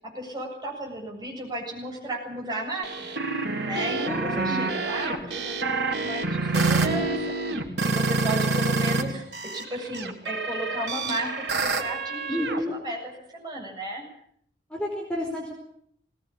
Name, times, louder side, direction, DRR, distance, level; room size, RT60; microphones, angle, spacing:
voice 1, 0.0-3.1 3.6-9.2 9.5-14.0, right 1 dB, 25° right, -1 dB, 7.6 m, -34 dB
sound 1, 2.8-9.0 9.3-12.6, right 3 dB, 75° right, 3.3 m, -27 dB
voice 2, 4.0-4.6 12.3-12.8 14.7-15.5, equal, 5° left, -1 dB, 4.6 m, -30 dB
21.5 x 19.0 x 8.7 m, 0.67 s
head